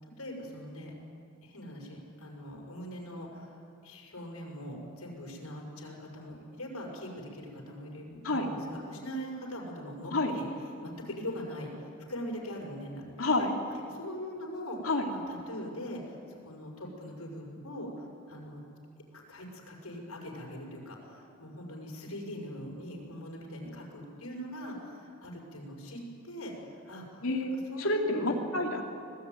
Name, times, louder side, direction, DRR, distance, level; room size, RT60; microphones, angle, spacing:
voice 1, 0.0-0.9 1.4-10.5 10.8-11.7 12.1-13.5 13.9-14.8 15.1-18.6 19.1-27.2 27.7-28.1, equal, 90° left, -1 dB, 6.2 m, -42 dB
voice 2, 13.2-13.5 14.8-15.1 27.2-27.5 27.8-28.8, left 2 dB, 70° left, 2 dB, 3.2 m, -28 dB
25.5 x 19.0 x 9.6 m, 2.4 s
head